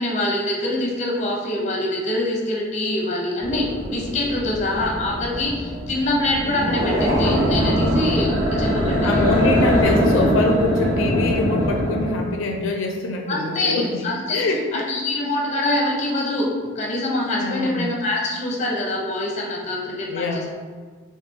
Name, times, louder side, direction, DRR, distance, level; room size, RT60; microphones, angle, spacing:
voice 1, 0.0-9.4 13.3-14.4 14.7-20.5, left 1 dB, 35° left, -2 dB, 0.7 m, -25 dB
sound 1, 3.4-12.1, equal, 60° right, 1.3 m, -22 dB
voice 2, 9.0-14.0 14.3-14.8 17.4-17.8 19.9-20.5, left 2 dB, 80° left, 2 dB, 0.4 m, -24 dB
3.2 x 2.7 x 3.5 m, 1.5 s
head